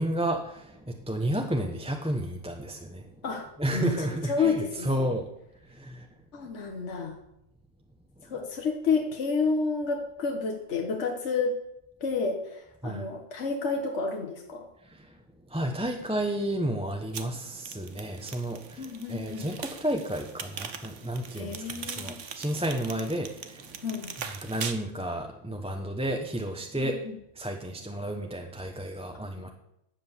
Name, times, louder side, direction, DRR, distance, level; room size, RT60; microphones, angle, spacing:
voice 1, 0.0-3.1 3.6-5.3 5.7-6.1 12.8-13.0 14.8-15.2 15.5-23.7 24.4-27.0 27.4-29.5, right 1 dB, 5° right, 3 dB, 0.8 m, -32 dB
voice 2, 3.2-5.0 6.3-7.2 8.2-11.6 12.0-14.7 18.8-19.5 21.3-22.2 23.8-24.1 26.8-27.1, left 4 dB, 65° left, 2 dB, 1.6 m, -30 dB
sound 1, 17.1-24.7, right 6 dB, 75° right, 1.3 m, -41 dB
10.5 x 7.7 x 7.0 m, 0.81 s
omnidirectional pair, 1.3 m